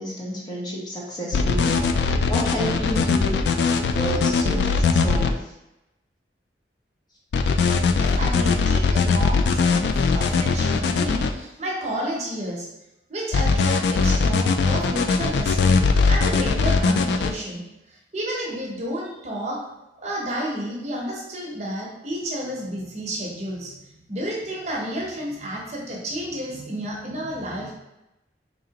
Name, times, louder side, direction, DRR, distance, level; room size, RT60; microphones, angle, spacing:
voice 1, 0.0-1.8 2.3-3.3 3.7-5.5, equal, 25° left, -4 dB, 0.8 m, -30 dB
sound 1, 1.3-5.3 7.3-11.3 13.3-17.3, left 4 dB, 75° left, 0.3 m, -20 dB
voice 2, 7.9-12.7 13.1-15.8 16.1-19.6 20.0-27.7, right 1 dB, 40° right, -2 dB, 0.8 m, -31 dB
4.0 x 2.9 x 2.8 m, 0.91 s
head